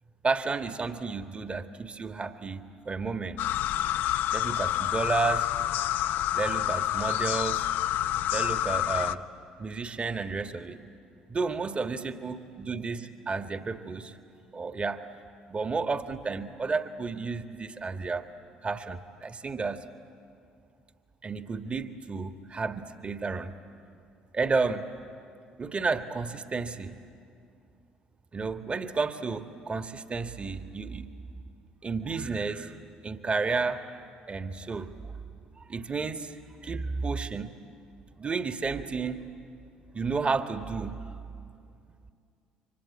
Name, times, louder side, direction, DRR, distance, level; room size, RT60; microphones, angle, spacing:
voice 1, 0.2-3.4 4.3-5.5 6.3-7.7 8.3-9.2 9.6-10.8 11.3-14.2 14.5-15.0 15.5-18.3 18.6-19.8 21.2-23.5 24.3-24.8 25.6-27.0 28.3-31.1 31.8-32.8 33.0-34.9 35.6-37.5 38.2-39.2 39.9-41.1, right 4 dB, 30° right, 8 dB, 1.5 m, -32 dB
sound 1, 3.4-9.1, left 12 dB, 60° left, 0.6 m, -28 dB
28.5 x 24.5 x 8.5 m, 2.4 s
figure-of-eight pair, 55°, 4 cm